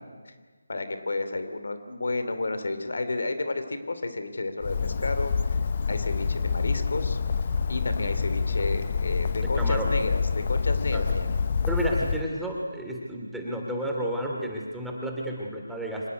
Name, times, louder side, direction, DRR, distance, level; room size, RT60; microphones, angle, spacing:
voice 1, 0.7-5.6 5.9-7.2 7.7-11.4, left 2 dB, 65° left, 9 dB, 2.8 m, -31 dB
Bird, 4.6-12.2, left 5 dB, 40° left, 1.0 m, -27 dB
voice 2, 9.6-9.9 10.9-11.0 11.7-16.1, right 1 dB, ahead, -2 dB, 2.9 m, -31 dB
25.0 x 19.0 x 9.6 m, 1.4 s
figure-of-eight pair, 160°, 0 cm